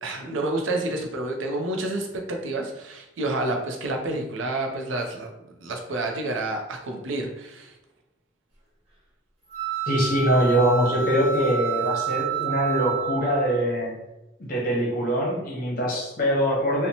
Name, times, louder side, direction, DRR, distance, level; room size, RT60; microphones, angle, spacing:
voice 1, 0.0-5.3 5.6-7.7, right 2 dB, 85° right, 2 dB, 0.5 m, -29 dB
sound 1, 9.5-13.6, right 7 dB, 30° right, 1.1 m, -29 dB
voice 2, 9.9-13.9 14.4-16.9, equal, 45° left, -3 dB, 0.7 m, -23 dB
2.8 x 2.1 x 2.7 m, 0.92 s
head